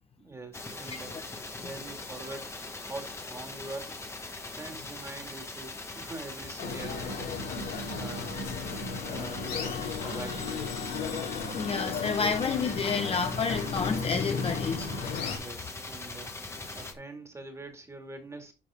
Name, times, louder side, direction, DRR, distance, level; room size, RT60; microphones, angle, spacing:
voice 1, 0.2-1.1 1.6-4.1 4.5-7.4 7.9-10.8 15.3-16.3 16.7-18.5, right 2 dB, 15° right, 2.3 m, -44 dB
sound 1, 0.5-16.9, left 2 dB, 15° left, 1.4 m, -41 dB
sound 2, 6.6-15.4, left 4 dB, 85° left, 4.7 m, -35 dB
voice 2, 11.5-15.3, left 5 dB, 35° left, 1.1 m, -30 dB
12.0 x 4.2 x 3.7 m
cardioid pair, 110°, 17 cm